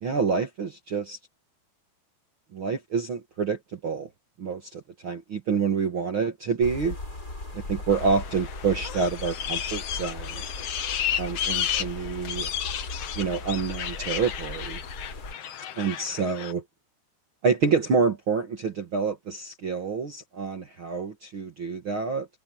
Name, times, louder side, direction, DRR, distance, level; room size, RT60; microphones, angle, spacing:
voice 1, 0.0-1.2 2.5-4.1 4.4-7.0 7.5-10.4 11.2-12.5 13.1-14.8 15.8-16.6 17.4-22.3, right 5 dB, 55° right, 1.4 m, -27 dB
sound 1, 6.6-15.3, left 2 dB, 20° left, 5.8 m, -38 dB
sound 2, 7.9-16.5, left 10 dB, 70° left, 1.4 m, -33 dB
omnidirectional pair, 4.7 m